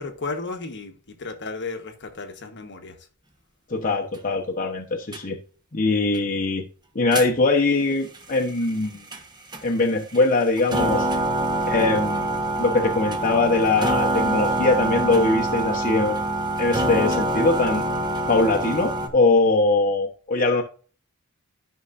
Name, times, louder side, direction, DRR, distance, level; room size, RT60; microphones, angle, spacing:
voice 1, 0.0-3.0, left 3 dB, 55° left, 1.3 m, -34 dB
voice 2, 3.7-5.4 5.7-6.6 6.9-9.0 9.6-11.1 11.7-12.3 12.6-17.8 18.3-20.6, left 3 dB, 40° left, 1.1 m, -22 dB
sound 1, 5.1-5.2 7.1-7.3 9.1-9.2 9.5-9.6 10.1-10.2 10.6-19.1, right 1 dB, 20° right, 1.2 m, -25 dB
13.5 x 5.7 x 2.6 m
head